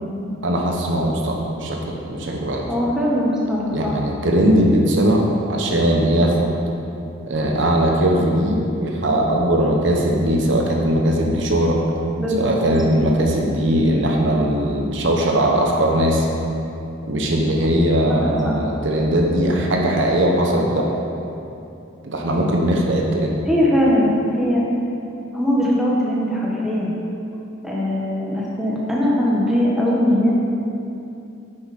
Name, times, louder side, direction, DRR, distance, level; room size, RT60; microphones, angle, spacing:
voice 1, 0.4-2.7 3.7-6.5 7.3-11.8 12.3-16.3 17.1-20.9 22.0-23.4, right 1 dB, 65° right, 0 dB, 1.0 m, -19 dB
voice 2, 2.7-3.9 12.2-12.5 18.1-18.5 23.5-24.7 25.3-26.9 27.6-30.3, equal, ahead, -6 dB, 1.2 m, -20 dB
9.8 x 7.0 x 4.2 m, 2.8 s
head